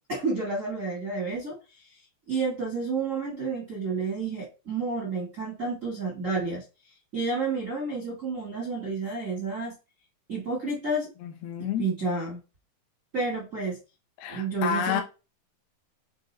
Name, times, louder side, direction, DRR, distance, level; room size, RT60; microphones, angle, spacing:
voice 1, 0.1-2.0 2.3-6.6 7.1-9.7 10.3-11.1 11.6-12.4 13.1-13.8 14.3-15.0, right 3 dB, 45° right, 1.0 m, -30 dB
voice 2, 11.2-11.8 14.2-15.0, left 8 dB, 90° left, 3.0 m, -29 dB
8.0 x 3.8 x 3.3 m
omnidirectional pair, 4.3 m